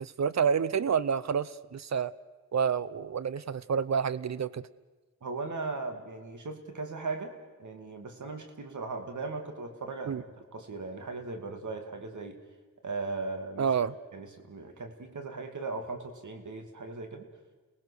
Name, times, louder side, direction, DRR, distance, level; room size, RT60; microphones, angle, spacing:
voice 1, 0.0-2.1 2.5-4.6 10.1-10.2 13.6-13.9, right 7 dB, 65° right, 17 dB, 0.8 m, -28 dB
voice 2, 5.2-7.3 7.6-12.4 12.8-13.7 14.1-17.3, right 3 dB, 80° right, 5 dB, 2.7 m, -38 dB
30.0 x 19.0 x 6.5 m, 1.3 s
wide cardioid pair, 75°, 30 cm